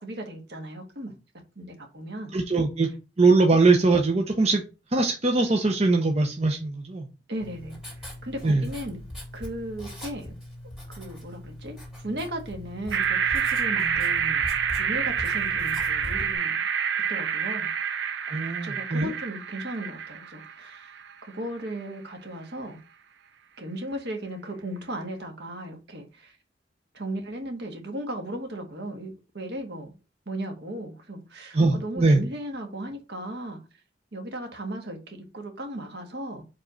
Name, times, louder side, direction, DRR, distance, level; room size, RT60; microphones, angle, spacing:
voice 1, 0.0-1.1 1.5-2.3 7.3-9.0 9.3-10.3 10.9-14.5 14.7-16.6 17.1-17.7 18.3-22.8 23.6-26.4 26.9-29.9 30.2-33.6 34.1-36.4, right 1 dB, 65° right, 1.6 m, -36 dB
voice 2, 2.3-2.9 3.2-4.6 4.9-7.1 8.4-8.7 18.3-19.1 31.5-32.2, right 3 dB, 35° right, 0.8 m, -21 dB
Writing, 7.4-16.4, left 1 dB, ahead, 3.1 m, -40 dB
sound 1, 12.9-21.1, right 7 dB, 90° right, 0.6 m, -27 dB
5.0 x 3.6 x 5.1 m
head